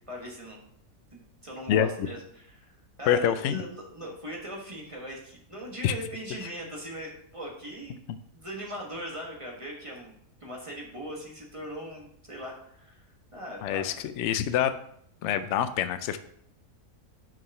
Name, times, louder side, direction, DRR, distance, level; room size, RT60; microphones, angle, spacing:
voice 1, 0.1-0.6 1.1-8.0 8.3-10.1 10.4-13.0 13.3-13.9, equal, 20° right, -1 dB, 1.3 m, -40 dB
voice 2, 3.1-3.6 5.8-5.9 13.6-14.7 15.2-16.2, left 10 dB, 70° left, 10 dB, 0.7 m, -25 dB
6.2 x 4.7 x 5.4 m, 0.69 s
omnidirectional pair, 1.6 m